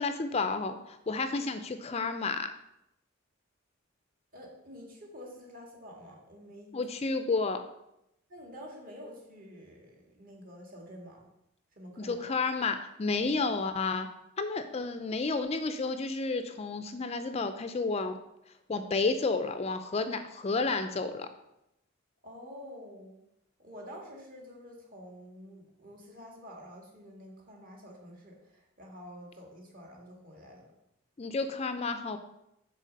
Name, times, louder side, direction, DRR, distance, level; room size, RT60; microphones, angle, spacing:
voice 1, 0.0-2.5 6.7-7.6 12.0-14.1 14.4-18.2 18.7-21.3 31.2-32.2, left 3 dB, 30° left, 9 dB, 0.4 m, -31 dB
voice 2, 4.3-6.8 8.3-11.2 11.7-12.2 22.2-23.2 23.6-30.7, equal, 45° right, -1 dB, 1.9 m, -48 dB
6.5 x 4.1 x 6.4 m, 0.83 s
head